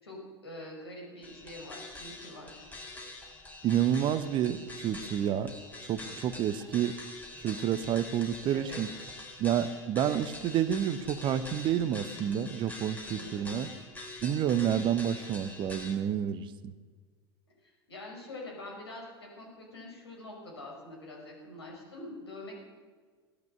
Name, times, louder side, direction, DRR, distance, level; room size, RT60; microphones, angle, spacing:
voice 1, 0.0-2.7 8.5-8.8 13.1-13.5 17.6-22.6, left 1 dB, 75° left, -2 dB, 5.8 m, -45 dB
sound 1, 1.2-16.0, left 2 dB, 10° left, 3.8 m, -45 dB
voice 2, 3.6-5.5 5.8-7.0 7.4-8.9 9.4-13.7 14.2-16.7, right 10 dB, 35° right, 14 dB, 0.8 m, -29 dB
17.5 x 12.0 x 6.5 m, 1.5 s
figure-of-eight pair, 80°, 14 cm